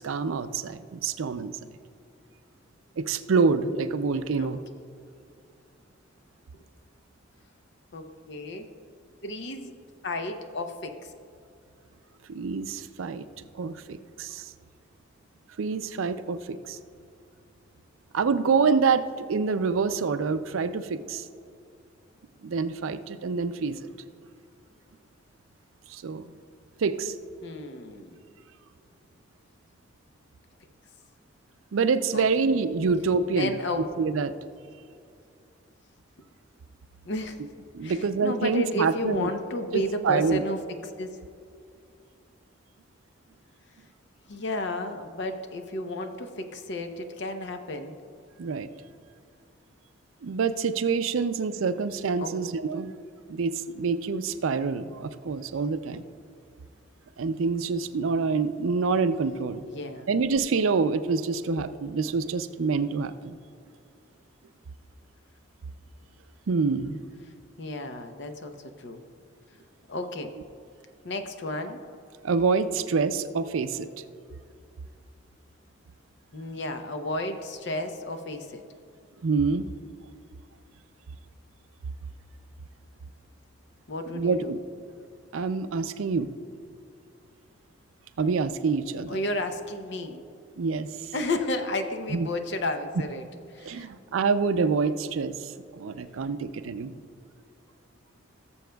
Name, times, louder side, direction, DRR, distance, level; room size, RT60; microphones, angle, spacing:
voice 1, 0.0-1.5 3.0-4.6 12.3-13.2 13.6-14.5 15.6-16.8 18.1-21.2 22.4-23.8 25.9-26.3 26.8-27.1 31.7-33.6 34.0-34.3 37.7-39.3 39.7-40.4 48.4-48.7 50.2-52.9 53.3-56.0 57.2-59.6 60.1-63.4 66.5-67.0 72.2-73.9 79.2-79.7 84.1-84.6 85.3-86.3 88.2-89.2 90.6-90.9 92.1-92.3 93.6-96.9, right 4 dB, 85° right, 12 dB, 0.4 m, -26 dB
voice 2, 7.9-8.7 9.2-9.7 10.0-11.1 27.4-28.2 32.1-32.2 33.3-33.9 37.0-37.4 37.8-41.2 44.3-47.9 52.2-52.3 59.7-60.1 67.6-69.0 69.9-70.3 71.0-71.8 76.3-78.6 83.9-84.5 89.1-90.2 91.1-93.2 93.5-93.9, left 1 dB, 60° left, 7 dB, 0.7 m, -32 dB
18.0 x 7.0 x 2.3 m, 2.4 s
head